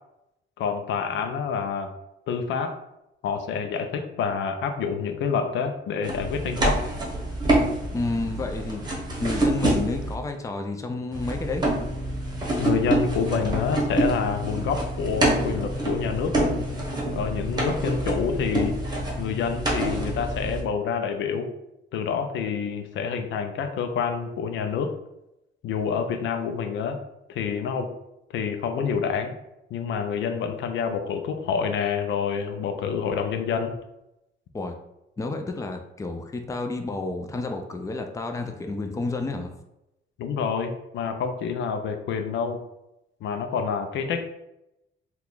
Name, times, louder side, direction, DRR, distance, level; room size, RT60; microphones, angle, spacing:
voice 1, 0.6-1.9 2.3-2.8 3.2-6.8 12.6-16.5 17.1-18.7 19.2-21.5 21.9-24.9 25.6-27.0 27.3-27.9 28.3-29.3 29.7-33.7 40.2-42.6 43.2-44.3, left 6 dB, 70° left, 6 dB, 0.5 m, -27 dB
sound 1, 6.0-10.1 11.1-20.6, right 1 dB, 20° right, 1.0 m, -26 dB
voice 2, 7.9-11.6 34.5-34.8 35.2-39.6, left 3 dB, 15° left, 5 dB, 0.4 m, -30 dB
2.8 x 2.3 x 3.8 m, 0.87 s
cardioid pair, 90°, 20 cm